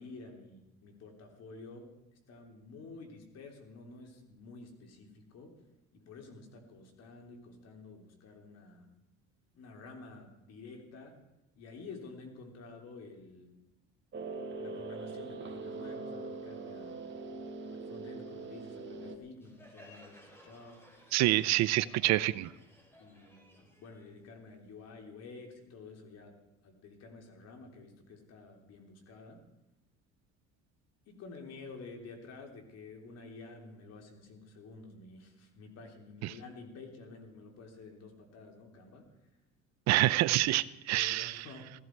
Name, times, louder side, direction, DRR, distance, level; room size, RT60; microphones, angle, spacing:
voice 1, 0.0-2.0 2.3-5.6 5.9-8.9 9.5-11.2 11.6-13.6 14.6-17.0 17.7-20.9 23.0-26.4 26.6-29.5 31.1-39.1 41.0-41.7, left 3 dB, 55° left, 3.6 m, -50 dB
sound 1, 14.1-19.2, right 3 dB, 35° right, 2.0 m, -42 dB
Crowd, 19.4-24.8, left 1 dB, 10° left, 3.9 m, -58 dB
voice 2, 21.1-22.5 36.2-36.3 39.9-41.5, right 16 dB, 60° right, 0.7 m, -27 dB
17.0 x 14.5 x 4.7 m
cardioid pair, 115°, 31 cm